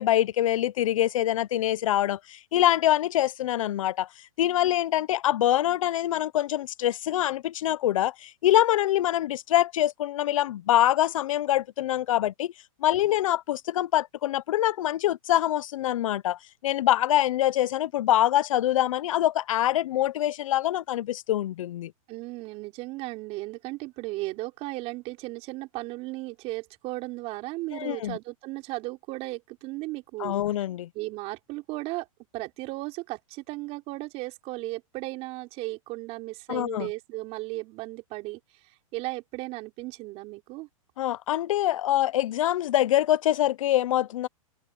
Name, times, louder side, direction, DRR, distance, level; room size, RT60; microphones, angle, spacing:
voice 1, 0.0-4.1 4.4-12.5 12.8-21.9 27.7-28.2 30.2-30.9 36.5-36.9 41.0-44.3, left 13 dB, 65° left, 0.8 m, -25 dB
voice 2, 22.1-30.4 30.9-32.1 32.3-40.7, right 21 dB, 35° right, 5.4 m, -36 dB
hypercardioid pair, 145°, 18 cm